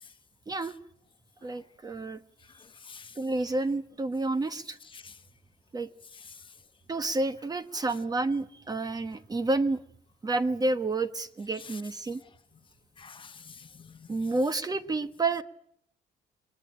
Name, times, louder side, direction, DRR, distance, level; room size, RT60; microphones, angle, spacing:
voice 1, 1.4-2.2 3.2-4.8 5.7-5.9 6.9-9.8 10.2-12.2 14.1-15.4, right 2 dB, 20° right, 1.3 m, -29 dB
voice 2, 2.4-3.2 4.8-5.2 6.1-6.6 7.7-7.8 11.6-11.8 12.2-12.3 13.0-14.3, left 5 dB, 30° left, 1.4 m, -49 dB
23.0 x 20.0 x 8.9 m
cardioid pair, 110°, 17 cm